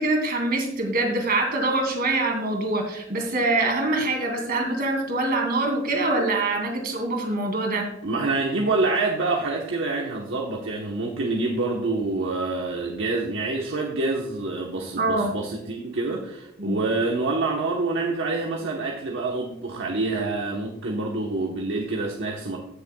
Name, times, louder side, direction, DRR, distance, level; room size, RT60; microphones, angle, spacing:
voice 1, 0.0-7.9 15.0-15.3 16.6-16.8, right 2 dB, 50° right, 2 dB, 2.5 m, -24 dB
voice 2, 8.0-22.6, right 3 dB, 65° right, 0 dB, 1.1 m, -27 dB
16.5 x 6.7 x 2.3 m, 0.88 s
head